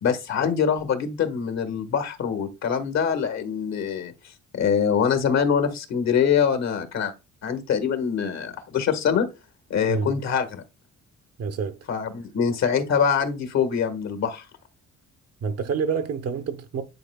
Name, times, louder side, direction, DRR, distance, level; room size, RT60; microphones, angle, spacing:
voice 1, 0.0-4.1 4.5-7.1 7.4-9.3 9.7-10.6 11.9-14.4, left 7 dB, 60° left, 1.6 m, -24 dB
voice 2, 9.9-10.2 11.4-11.8 15.4-16.8, right 6 dB, 55° right, 0.9 m, -27 dB
10.5 x 4.5 x 2.3 m
cardioid pair, 90°, 30 cm